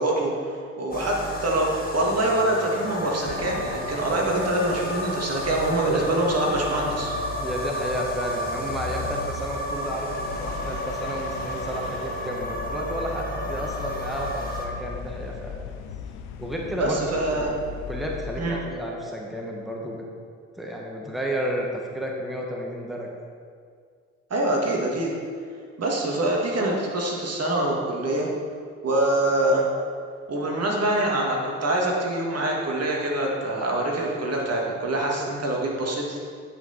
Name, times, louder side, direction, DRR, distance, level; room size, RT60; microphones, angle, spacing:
voice 1, 0.0-7.1 16.8-17.5 18.4-18.6 24.3-25.1 25.8-28.3 28.8-29.7 30.3-36.2, right 1 dB, 45° right, -1 dB, 1.9 m, -25 dB
sound 1, 0.9-14.7, equal, 25° left, 1.6 m, -32 dB
sound 2, 3.3-18.8, left 6 dB, 75° left, 0.6 m, -38 dB
voice 2, 7.4-15.6 16.4-17.5 17.9-20.1 20.6-21.7 21.9-23.1, equal, ahead, -2 dB, 1.4 m, -32 dB
9.2 x 5.8 x 4.2 m, 2.1 s
hypercardioid pair, 45°, 34 cm